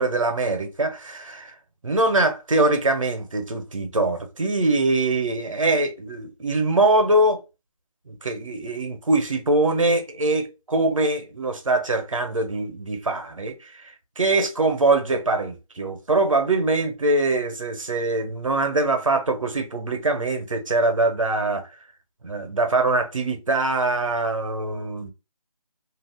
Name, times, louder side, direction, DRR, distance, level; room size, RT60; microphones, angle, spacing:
voice 1, 0.0-1.5 1.8-7.4 8.1-21.7 22.2-25.1, right 2 dB, 60° right, 0.7 m, -23 dB
2.4 x 2.1 x 3.3 m
figure-of-eight pair, 180°, 19 cm